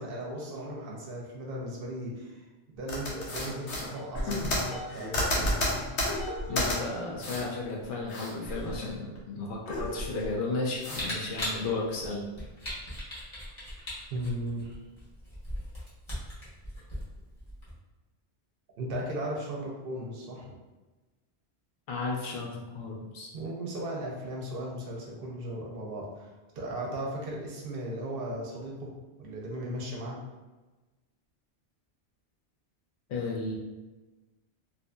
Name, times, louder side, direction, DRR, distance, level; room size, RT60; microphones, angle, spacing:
voice 1, 0.0-5.8 14.1-14.8 18.8-20.6 23.3-28.9 29.2-30.2, right 1 dB, 60° right, -2 dB, 0.7 m, -37 dB
sound 1, 2.9-6.7 7.2-7.5 7.8-9.2 9.5-10.3 10.8-11.1, left 1 dB, 75° left, 1.0 m, -31 dB
voice 2, 6.5-12.2 21.9-23.3 33.1-33.6, left 3 dB, 55° left, -2 dB, 0.6 m, -34 dB
Camera, 10.9-17.7, left 1 dB, 30° left, 0.8 m, -39 dB
2.7 x 2.5 x 2.2 m, 1.2 s
omnidirectional pair, 1.2 m